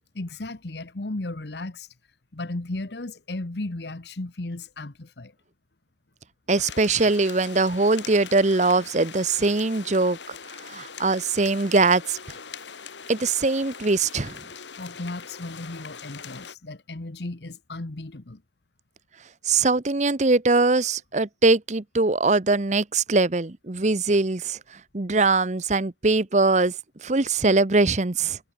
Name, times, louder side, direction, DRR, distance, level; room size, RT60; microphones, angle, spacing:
voice 1, 0.1-1.9 2.3-5.3 7.0-7.1 14.8-18.4, left 2 dB, 70° left, 1.2 m, -35 dB
sound 1, 6.5-16.6, left 6 dB, 90° left, 2.0 m, -42 dB
voice 2, 6.5-10.3 10.6-12.2 13.1-14.4 19.4-24.6 24.9-26.7 27.0-28.4, right 3 dB, 40° right, 0.9 m, -22 dB
head